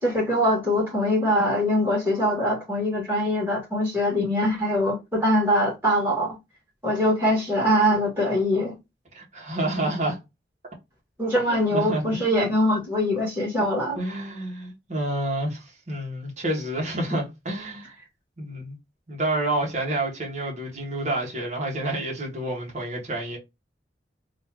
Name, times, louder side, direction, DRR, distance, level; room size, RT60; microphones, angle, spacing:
voice 1, 0.0-6.4 6.8-8.7 11.2-14.0, equal, 15° right, 2.0 m, -23 dB
voice 2, 9.1-10.2 11.5-12.4 14.0-17.9 18.4-18.8 19.1-23.4, right 1 dB, 40° right, 1.6 m, -29 dB
3.8 x 3.0 x 3.0 m
head